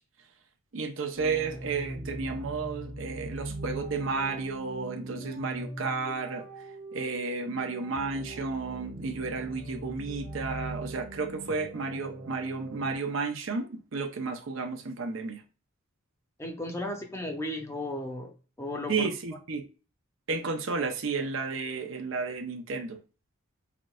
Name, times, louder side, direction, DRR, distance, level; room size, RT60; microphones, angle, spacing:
voice 1, 0.7-6.5 6.9-15.4 18.9-19.6 20.3-23.0, right 4 dB, 65° right, 0.6 m, -32 dB
sound 1, 1.1-13.0, right 1 dB, 80° right, 1.3 m, -41 dB
voice 2, 16.4-18.3 18.6-19.1, left 1 dB, 15° left, 0.6 m, -35 dB
5.8 x 2.5 x 2.3 m
head